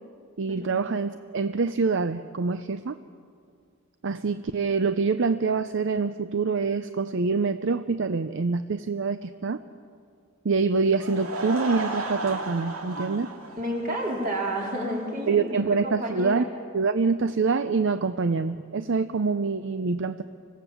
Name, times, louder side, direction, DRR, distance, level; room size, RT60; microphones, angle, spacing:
voice 1, 0.4-3.0 4.0-9.6 10.4-13.3 15.3-16.4 16.7-20.2, right 4 dB, 60° right, 11 dB, 0.6 m, -25 dB
Laughter / Crowd, 10.9-15.4, right 2 dB, 80° right, 2.2 m, -35 dB
voice 2, 13.6-15.5 15.8-16.4, right 1 dB, 40° right, -1 dB, 4.0 m, -30 dB
25.5 x 17.0 x 7.1 m, 2.2 s
head